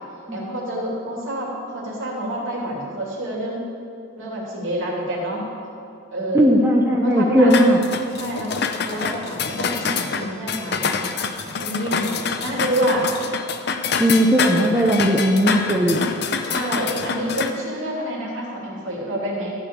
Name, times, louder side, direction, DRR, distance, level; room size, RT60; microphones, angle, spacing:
voice 1, 0.3-3.6 4.2-5.4 6.1-6.5 7.0-7.5 8.1-8.5 8.8-13.1 16.4-19.5, right 1 dB, 70° right, -3 dB, 3.0 m, -28 dB
voice 2, 6.3-7.8 14.0-16.1, equal, 10° right, -1 dB, 0.7 m, -17 dB
sound 1, 7.5-17.5, left 5 dB, 50° left, 0.6 m, -26 dB
14.0 x 5.0 x 8.4 m, 2.6 s
head